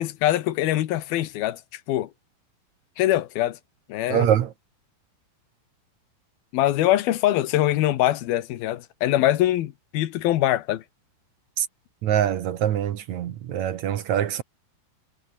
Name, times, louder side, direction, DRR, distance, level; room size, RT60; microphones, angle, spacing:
voice 1, 0.0-2.1 3.0-3.6 3.9-4.3 6.5-10.8, left 14 dB, 90° left, 3.2 m, -23 dB
voice 2, 4.1-4.5 11.6-11.7 12.0-14.4, right 10 dB, 65° right, 2.2 m, -24 dB
omnidirectional pair, 4.2 m